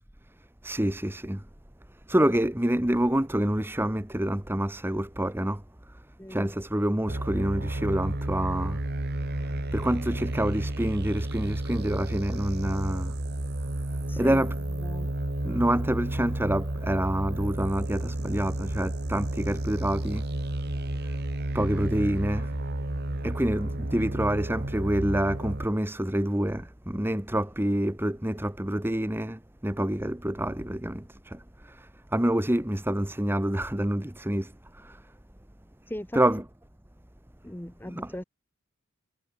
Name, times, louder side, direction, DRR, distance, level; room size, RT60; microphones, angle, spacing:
voice 1, 0.6-1.4 2.1-6.0 6.3-8.8 9.3-13.2 14.2-14.6 15.0-15.1 15.4-20.3 21.0-21.2 21.5-22.5 23.2-35.1 36.1-36.4 37.9-38.1, right 1 dB, 10° right, 1.2 m, -27 dB
voice 2, 6.2-6.5 14.1-15.1 35.9-36.2 37.4-38.2, left 1 dB, 10° left, 1.0 m, -38 dB
sound 1, 7.1-25.6, right 1 dB, 50° right, 1.8 m, -31 dB
head